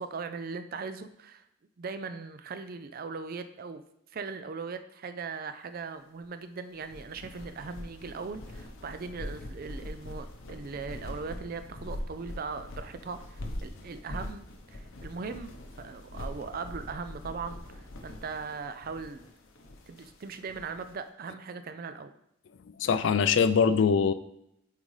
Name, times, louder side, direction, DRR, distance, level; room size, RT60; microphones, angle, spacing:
voice 1, 0.0-1.4 1.8-3.8 4.1-19.2 19.9-22.1, right 4 dB, 45° right, 10 dB, 0.4 m, -39 dB
sound 1, 6.8-20.9, left 1 dB, 80° left, 0.8 m, -43 dB
voice 2, 22.8-24.1, left 6 dB, 65° left, 12 dB, 0.3 m, -23 dB
8.9 x 3.8 x 3.2 m, 0.77 s
head